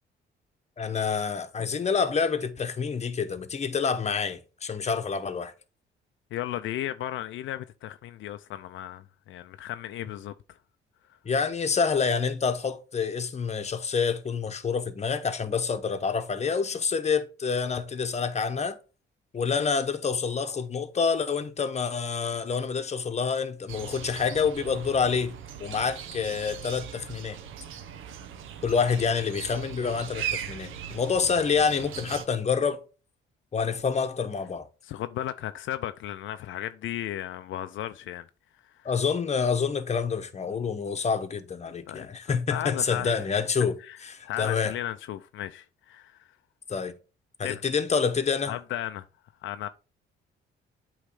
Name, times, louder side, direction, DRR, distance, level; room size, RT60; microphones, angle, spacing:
voice 1, 0.8-5.5 11.2-18.8 19.3-25.3 25.6-27.4 28.6-32.8 33.5-34.6 38.8-43.7 44.0-44.7 46.7-46.9 47.4-48.6, left 5 dB, 35° left, 0.9 m, -27 dB
voice 2, 6.3-10.6 34.8-38.3 38.6-38.9 41.9-43.3 43.8-44.0 44.2-46.3 47.4-47.6 48.5-49.0 49.4-49.7, left 12 dB, 75° left, 0.5 m, -35 dB
sound 1, 23.7-32.3, right 9 dB, 85° right, 0.9 m, -39 dB
8.2 x 3.2 x 5.0 m
cardioid pair, 90°, 20 cm